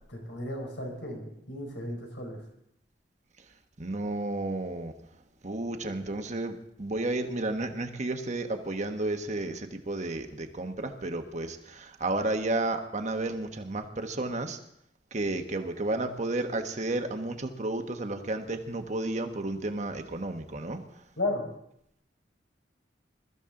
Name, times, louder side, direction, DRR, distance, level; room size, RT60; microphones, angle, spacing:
voice 1, 0.1-2.4 21.2-21.4, left 2 dB, 90° left, 1 dB, 5.0 m, -34 dB
voice 2, 3.8-4.9 5.4-14.6 15.1-20.8, right 2 dB, 40° right, 6 dB, 1.2 m, -32 dB
22.0 x 13.5 x 3.8 m, 0.75 s
head